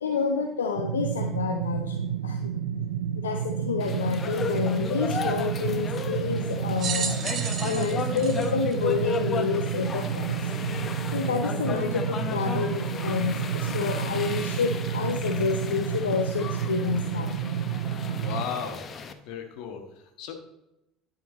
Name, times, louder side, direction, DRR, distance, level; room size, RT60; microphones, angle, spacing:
voice 1, 0.0-2.5 3.1-7.2 7.6-10.5 11.1-17.3, left 6 dB, 85° left, 4 dB, 0.6 m, -29 dB
sound 1, 0.8-18.4, right 9 dB, 80° right, 0.6 m, -30 dB
sound 2, 3.8-19.1, left 5 dB, 40° left, 0.9 m, -35 dB
sound 3, 6.8-9.4 10.1-10.2 11.4-11.5, right 6 dB, 50° right, 1.0 m, -33 dB
voice 2, 18.2-18.8 19.2-20.3, left 7 dB, 65° left, 5 dB, 1.5 m, -35 dB
11.0 x 5.8 x 4.1 m, 0.90 s
hypercardioid pair, 65°, 0 cm